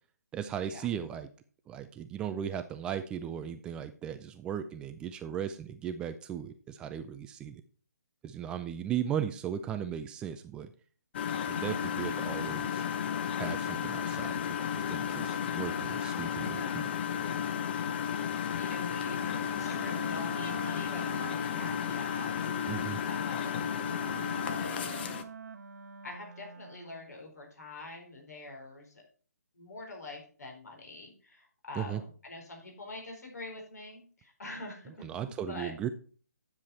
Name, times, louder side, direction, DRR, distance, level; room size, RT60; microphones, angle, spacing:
voice 1, 0.3-1.3 1.7-7.6 8.2-10.7 11.5-12.8 13.3-16.9 22.7-23.0 31.8-32.0 35.0-35.9, right 9 dB, 10° right, 9 dB, 0.3 m, -37 dB
Engine, 11.1-25.2, left 8 dB, 35° left, 0.9 m, -33 dB
voice 2, 18.5-23.6 24.2-25.1 26.0-29.0 29.5-35.7, left 2 dB, 65° left, 2 dB, 4.2 m, -45 dB
Wind instrument woodwind instrument, 18.6-27.1, right 5 dB, 60° right, 1.0 m, -46 dB
9.8 x 7.3 x 4.2 m, 0.41 s
figure-of-eight pair, 140°, 9 cm